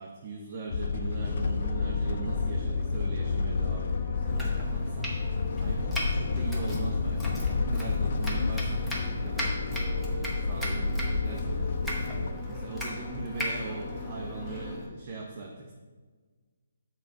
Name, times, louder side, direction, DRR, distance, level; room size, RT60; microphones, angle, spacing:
voice 1, 0.0-15.7, right 4 dB, 40° right, 0 dB, 0.7 m, -40 dB
sound 1, 0.7-12.3, left 4 dB, 60° left, 0.4 m, -30 dB
sound 2, 1.6-14.8, left 2 dB, 30° left, 1.3 m, -41 dB
Domestic sounds home sounds, 4.2-14.9, equal, ahead, 1.0 m, -39 dB
6.7 x 4.0 x 4.6 m, 1.4 s
hypercardioid pair, 150°, 0 cm